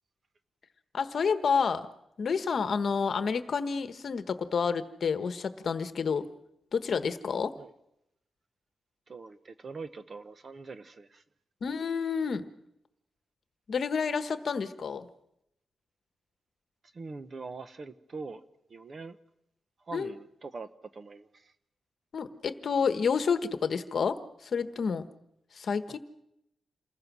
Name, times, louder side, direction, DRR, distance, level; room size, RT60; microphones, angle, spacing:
voice 1, 0.9-1.9 2.2-6.2 6.7-7.5 11.6-12.4 13.7-15.1 19.9-20.1 22.1-24.2 24.5-25.0 25.5-26.0, left 5 dB, 50° left, 10 dB, 1.2 m, -29 dB
voice 2, 9.1-11.2 16.9-18.4 18.7-19.2 19.9-21.5 25.9-26.0, right 4 dB, 35° right, 11 dB, 1.0 m, -43 dB
28.0 x 20.5 x 6.2 m, 0.84 s
wide cardioid pair, 160°, 0 cm